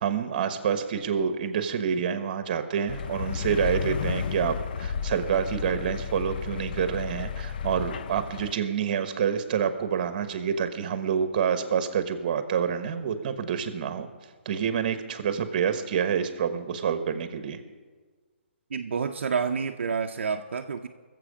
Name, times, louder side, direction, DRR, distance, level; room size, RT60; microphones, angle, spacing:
voice 1, 0.0-14.1 14.4-17.6, right 7 dB, 40° right, 9 dB, 1.2 m, -27 dB
sound 1, 2.9-8.5, left 7 dB, 45° left, 0.5 m, -33 dB
voice 2, 18.7-20.9, right 6 dB, 70° right, 4 dB, 0.6 m, -29 dB
21.0 x 7.6 x 5.0 m, 1.4 s
hypercardioid pair, 155°, 7 cm